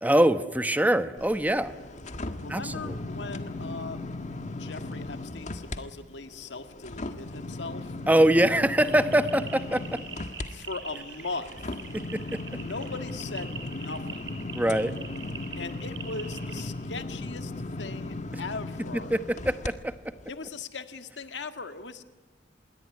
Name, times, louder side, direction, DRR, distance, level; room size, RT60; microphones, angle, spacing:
voice 1, 0.0-1.7 2.5-2.9 8.1-10.0 11.9-12.4 14.5-15.0 19.1-19.9, right 1 dB, 10° right, 11 dB, 1.0 m, -23 dB
sound 1, 1.2-5.8 6.2-19.7 20.2-20.3, left 2 dB, 40° left, 1.7 m, -37 dB
voice 2, 2.4-4.0 4.4-8.0 10.5-11.8 12.5-14.2 15.6-17.5 17.8-19.1 20.3-22.0, left 3 dB, 75° left, 8 dB, 1.9 m, -39 dB
sound 2, 8.8-16.6, right 6 dB, 80° right, 6.8 m, -44 dB
26.5 x 22.0 x 9.8 m, 1.4 s
head